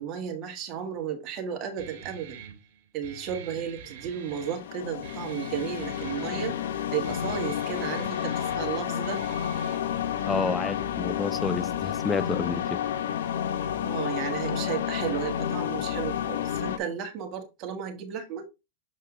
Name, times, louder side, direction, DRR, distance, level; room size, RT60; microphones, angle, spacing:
voice 1, 0.0-2.4 2.9-6.6 6.9-9.2 13.8-18.4, right 8 dB, 40° right, 1.7 m, -33 dB
Guitar, 1.8-9.8, right 8 dB, 60° right, 2.2 m, -46 dB
sound 1, 4.1-16.8, left 9 dB, 80° left, 0.9 m, -30 dB
voice 2, 10.3-12.8, left 4 dB, 15° left, 0.5 m, -30 dB
7.4 x 4.2 x 3.7 m
hypercardioid pair, 130°, 0 cm